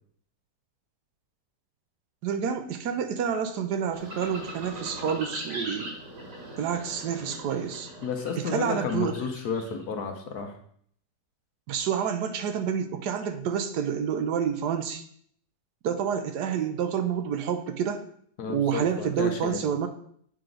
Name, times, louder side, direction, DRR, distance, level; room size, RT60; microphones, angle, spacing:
voice 1, 2.2-6.0 6.6-7.9 8.4-9.2 11.7-15.0 15.8-18.0 18.5-19.9, right 7 dB, 75° right, 8 dB, 1.2 m, -28 dB
sound 1, 3.9-9.8, right 1 dB, 50° right, 1.7 m, -40 dB
voice 2, 8.0-10.6 18.4-19.6, left 5 dB, 65° left, 5 dB, 1.3 m, -32 dB
7.7 x 4.6 x 3.9 m, 0.63 s
omnidirectional pair, 1.9 m